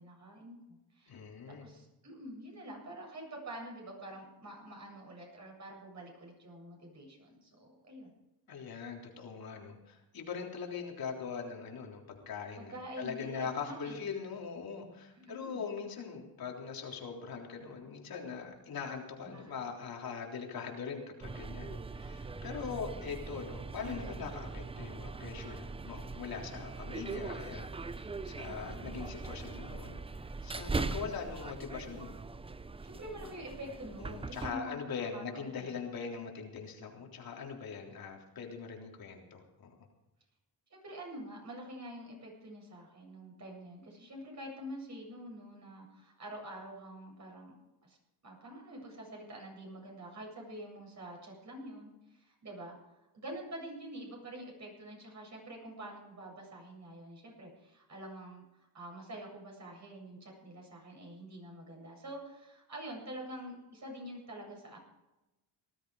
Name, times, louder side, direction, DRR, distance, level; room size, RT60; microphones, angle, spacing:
voice 1, 0.0-8.1 12.6-14.0 15.1-15.6 19.2-19.5 28.4-29.0 32.8-34.8 35.1-35.8 40.7-47.5 47.8-48.0 48.2-52.8 53.1-58.4 58.7-64.8, right 1 dB, 40° right, 0 dB, 8.0 m, -47 dB
voice 2, 1.1-1.7 8.5-30.0 30.4-32.1 34.0-39.7, left 6 dB, 55° left, 0 dB, 3.7 m, -41 dB
sound 1, 21.2-34.5, right 3 dB, 15° right, 0.6 m, -41 dB
19.0 x 13.0 x 4.9 m, 0.97 s
cardioid pair, 100°, 41 cm